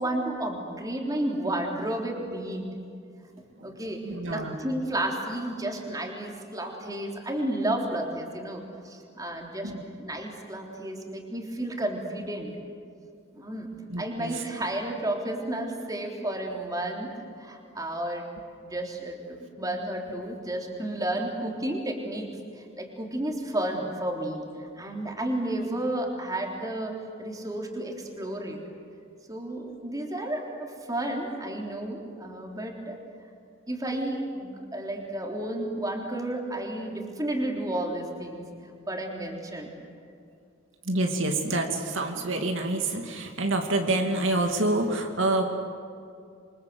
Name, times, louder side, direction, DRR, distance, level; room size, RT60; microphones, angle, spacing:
voice 1, 0.0-2.7 3.6-9.7 10.0-12.5 13.3-13.7 14.0-18.3 18.6-28.6 29.3-33.0 33.7-38.4 38.9-39.7, right 1 dB, 20° right, 1 dB, 3.6 m, -32 dB
voice 2, 4.0-4.6 9.6-9.8 13.9-14.5 40.8-45.4, right 2 dB, 75° right, 3 dB, 2.7 m, -27 dB
27.5 x 24.5 x 8.1 m, 2.4 s
head